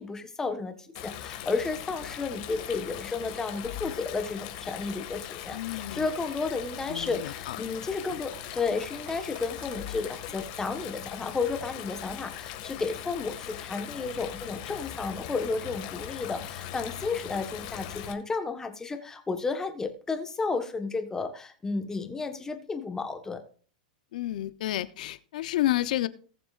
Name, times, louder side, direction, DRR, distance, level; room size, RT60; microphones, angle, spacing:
voice 1, 0.0-23.4, left 4 dB, 10° left, 6 dB, 1.4 m, -32 dB
Stream, 0.9-18.1, left 12 dB, 50° left, 2.0 m, -40 dB
voice 2, 5.5-6.1 6.9-7.7 8.1-8.2 24.1-26.1, left 14 dB, 65° left, 15 dB, 0.8 m, -30 dB
sound 1, 6.4-11.6, right 4 dB, 35° right, 4.0 m, -56 dB
19.0 x 6.9 x 2.6 m, 0.43 s
hypercardioid pair, 130°, 4 cm